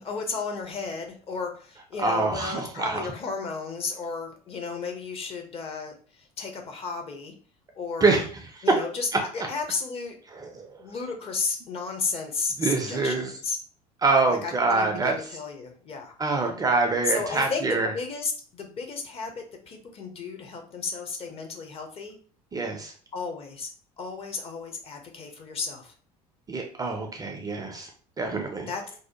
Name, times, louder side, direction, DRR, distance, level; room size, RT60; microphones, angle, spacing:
voice 1, 0.0-7.3 7.7-8.2 8.6-10.2 10.8-13.6 14.3-16.1 17.0-22.2 23.1-23.7 24.0-25.9 28.7-28.8, left 4 dB, 30° left, 4 dB, 0.6 m, -33 dB
voice 2, 2.0-3.1 8.0-8.3 10.6-10.7 12.6-13.3 14.0-15.1 16.2-17.9 22.5-22.9 26.5-27.9 28.2-28.7, right 3 dB, 20° right, 3 dB, 0.4 m, -25 dB
2.6 x 2.0 x 2.8 m, 0.42 s
figure-of-eight pair, 65°, 19 cm